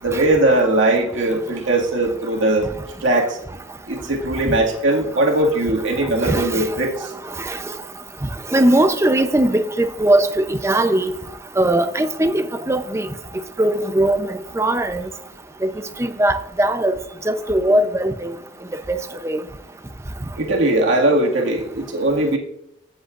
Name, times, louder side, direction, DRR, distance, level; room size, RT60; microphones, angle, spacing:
voice 1, 0.0-2.7 3.0-3.4 3.9-7.1 20.4-22.4, right 1 dB, 85° right, 2.0 m, -19 dB
voice 2, 6.2-6.7 7.4-7.6 8.2-11.1 11.6-13.1 13.6-15.1 15.6-15.7 16.0-17.0 17.3-18.4 18.9-19.0 19.2-19.4, right 1 dB, 15° right, 0.6 m, -19 dB
15.5 x 8.0 x 2.5 m
head